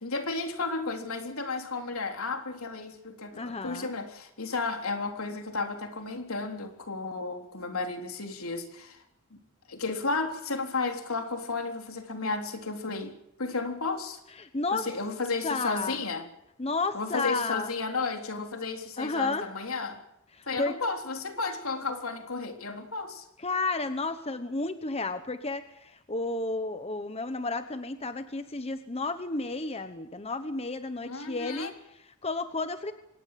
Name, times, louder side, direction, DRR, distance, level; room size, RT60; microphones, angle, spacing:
voice 1, 0.0-9.0 9.3-9.4 9.7-14.2 14.7-16.2 16.9-20.0 20.5-23.3 31.0-31.7, left 3 dB, 75° left, 5 dB, 3.7 m, -33 dB
voice 2, 3.3-3.9 14.4-14.9 15.4-16.0 16.6-17.7 19.0-19.5 20.3-20.8 23.4-32.9, left 3 dB, 30° left, 10 dB, 1.1 m, -32 dB
25.0 x 19.5 x 7.7 m, 0.81 s
head